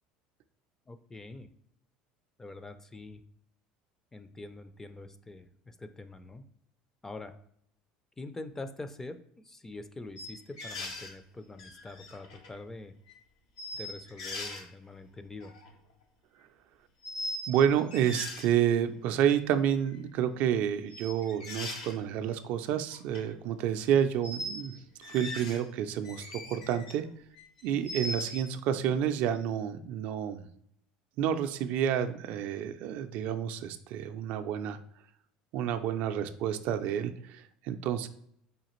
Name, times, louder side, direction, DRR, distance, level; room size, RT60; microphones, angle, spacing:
voice 1, 0.9-1.5 2.4-3.2 4.1-6.4 7.0-7.4 8.2-12.9 13.7-15.5, left 2 dB, 15° left, 10 dB, 0.4 m, -44 dB
sound 1, 10.2-11.1 11.6-12.6 13.1-13.2 13.6-14.6 15.4-15.7 17.0-17.6 17.9-18.5 19.3-19.4 20.9-21.9 22.9-23.2 24.2-24.7 25.0-25.7 26.0-26.9 27.4-28.4, left 1 dB, 90° left, 0.8 m, -39 dB
voice 2, 17.5-24.8 25.1-27.1 27.6-30.4 31.2-34.8 35.5-38.1, right 9 dB, 65° right, 9 dB, 0.3 m, -29 dB
4.9 x 2.4 x 3.0 m, 0.67 s
supercardioid pair, 90°, 3 cm